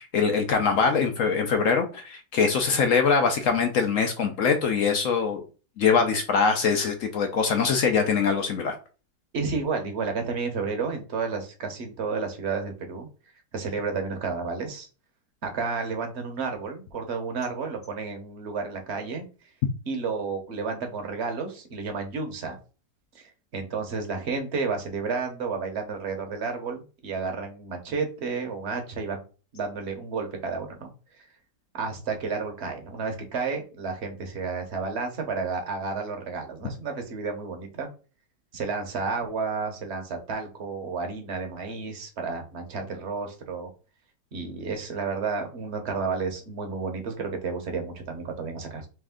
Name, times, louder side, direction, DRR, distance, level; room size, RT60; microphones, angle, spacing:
voice 1, 0.0-5.4 5.8-8.7, left 5 dB, 65° left, 5 dB, 0.8 m, -23 dB
voice 2, 9.3-13.1 13.5-14.9 15.4-19.2 19.9-22.6 23.1-29.2 29.5-30.9 31.7-37.9 38.5-43.7 44.3-48.9, right 4 dB, 45° right, 4 dB, 1.0 m, -31 dB
3.4 x 3.2 x 3.6 m, 0.34 s
omnidirectional pair, 1.9 m